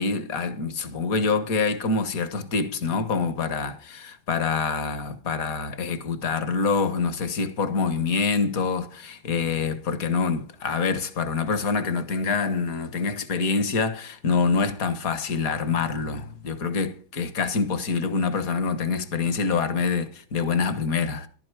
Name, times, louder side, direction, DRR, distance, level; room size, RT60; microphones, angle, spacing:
voice 1, 0.0-21.3, left 4 dB, 50° left, 1.5 m, -26 dB
13.5 x 12.0 x 4.8 m
omnidirectional pair, 2.1 m